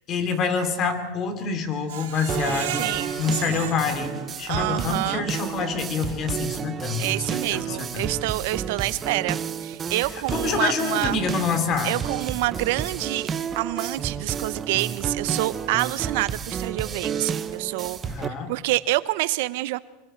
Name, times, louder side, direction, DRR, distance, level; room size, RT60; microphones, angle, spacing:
voice 1, 0.1-2.9 3.2-8.1 10.1-12.0 18.0-18.5, left 5 dB, 35° left, 8 dB, 2.9 m, -27 dB
Screech, 1.9-4.9 5.3-5.4 5.8-5.9, right 10 dB, 85° right, 3.1 m, -34 dB
sound 1, 2.3-18.3, right 7 dB, 25° right, 0.9 m, -31 dB
voice 2, 2.7-3.1 4.5-5.3 7.0-11.2 11.8-13.3 13.5-18.0 18.5-19.8, right 18 dB, 70° right, 17 dB, 0.7 m, -27 dB
25.0 x 24.5 x 4.5 m, 1.1 s
supercardioid pair, 135°, 0 cm